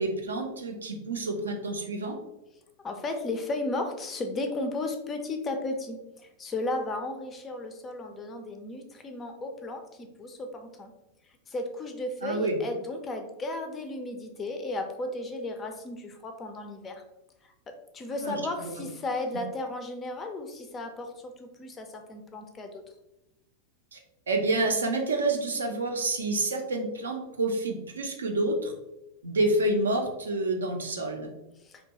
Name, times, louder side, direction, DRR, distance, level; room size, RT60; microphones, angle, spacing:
voice 1, 0.0-2.1 12.2-12.6 18.2-18.8 19.3-19.4 23.9-24.0 24.3-28.7 29.2-31.3, right 2 dB, 70° right, 3 dB, 0.4 m, -28 dB
voice 2, 2.8-6.0 6.4-10.9 11.5-17.0 17.7-22.8 31.6-31.7, left 2 dB, 20° left, 5 dB, 0.4 m, -34 dB
2.7 x 2.2 x 2.7 m, 0.93 s
figure-of-eight pair, 90°, 0 cm